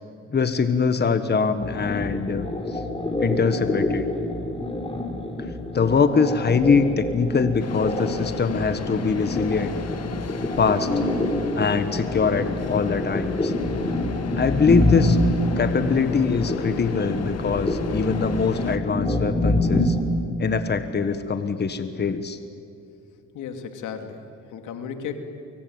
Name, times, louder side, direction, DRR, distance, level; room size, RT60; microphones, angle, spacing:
voice 1, 0.3-2.8 3.2-4.1 5.7-9.7 10.6-10.9 11.5-13.5 14.4-15.2 15.5-20.0 20.4-22.4, left 5 dB, 35° left, 10 dB, 1.5 m, -23 dB
sound 1, 1.6-20.0, left 1 dB, 20° left, 4.9 m, -26 dB
sound 2, 7.6-18.8, left 6 dB, 55° left, 2.1 m, -34 dB
voice 2, 23.3-25.1, left 7 dB, 85° left, 6 dB, 2.7 m, -35 dB
24.5 x 23.0 x 9.6 m, 2.7 s
cardioid pair, 90°, 30 cm